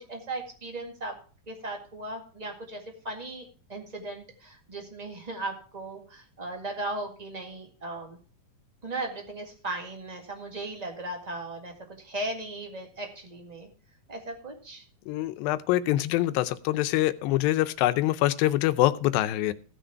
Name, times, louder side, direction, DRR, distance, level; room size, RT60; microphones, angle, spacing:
voice 1, 0.1-1.1 1.5-8.2 8.8-13.7 14.1-14.8, right 2 dB, 25° right, 2 dB, 0.9 m, -37 dB
voice 2, 15.1-19.5, left 15 dB, 85° left, 12 dB, 2.4 m, -25 dB
15.5 x 6.4 x 4.6 m, 0.40 s
omnidirectional pair, 4.1 m